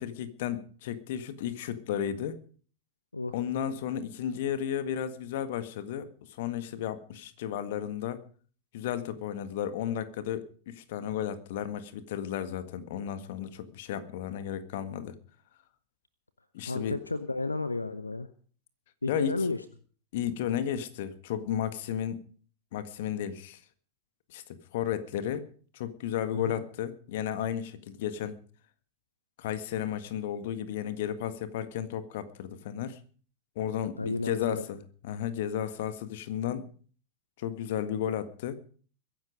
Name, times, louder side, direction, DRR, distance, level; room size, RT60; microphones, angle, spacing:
voice 1, 0.0-2.4 3.3-6.1 6.4-8.2 8.7-15.2 16.5-17.0 19.1-19.3 20.1-22.2 22.7-23.6 24.3-24.4 24.7-25.5 25.7-28.4 29.4-33.0 33.6-36.7 37.4-38.6, left 10 dB, 55° left, 12 dB, 1.7 m, -33 dB
voice 2, 16.7-18.3 19.0-19.6 26.3-26.6 34.0-34.6, left 3 dB, 80° left, 13 dB, 0.9 m, -32 dB
22.5 x 10.5 x 5.1 m, 0.43 s
figure-of-eight pair, 90°, 0 cm